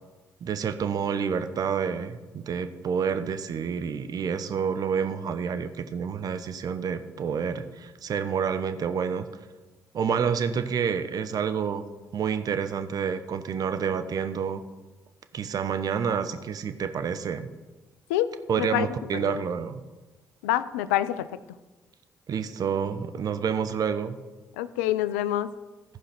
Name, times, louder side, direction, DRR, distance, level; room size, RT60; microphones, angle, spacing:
voice 1, 0.4-9.3 9.9-11.9 12.1-14.6 15.3-17.5 18.5-19.8 22.3-24.2, right 7 dB, 55° right, 9 dB, 0.9 m, -28 dB
voice 2, 18.1-18.9 19.1-19.4 20.4-21.3 24.6-25.5, left 13 dB, 85° left, 15 dB, 0.5 m, -27 dB
15.0 x 5.1 x 5.9 m, 1.2 s
hypercardioid pair, 45°, 8 cm